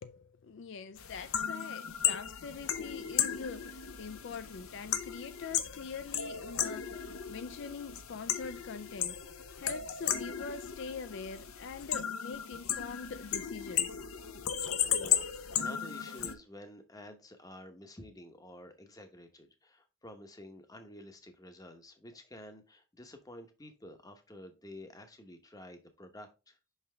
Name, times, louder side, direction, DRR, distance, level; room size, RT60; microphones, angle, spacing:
voice 1, 0.0-9.2 9.6-14.0, left 5 dB, 55° left, 0.4 m, -44 dB
sound 1, 1.0-16.3, left 9 dB, 80° left, 0.7 m, -35 dB
voice 2, 14.5-26.6, left 1 dB, 15° left, 0.8 m, -50 dB
5.7 x 5.6 x 3.3 m
head